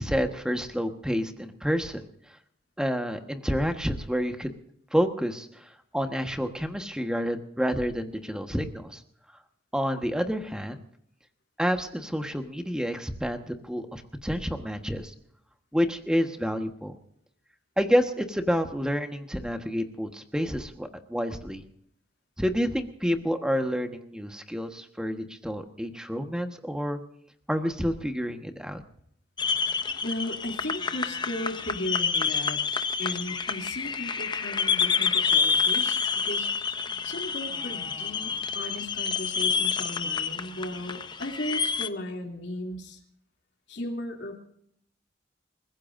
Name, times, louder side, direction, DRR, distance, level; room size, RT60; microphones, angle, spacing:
voice 1, 0.0-2.1 2.8-4.5 4.9-9.0 9.7-10.8 11.6-15.1 15.7-16.9 17.8-21.6 22.4-27.0 27.5-28.8, equal, 5° right, 5 dB, 1.4 m, -29 dB
sound 1, 29.4-41.9, left 6 dB, 25° left, 0.7 m, -28 dB
voice 2, 30.0-32.6 33.0-36.5 37.0-43.0 43.7-44.4, left 1 dB, 75° left, -1 dB, 3.0 m, -36 dB
28.5 x 15.5 x 2.7 m, 0.69 s
head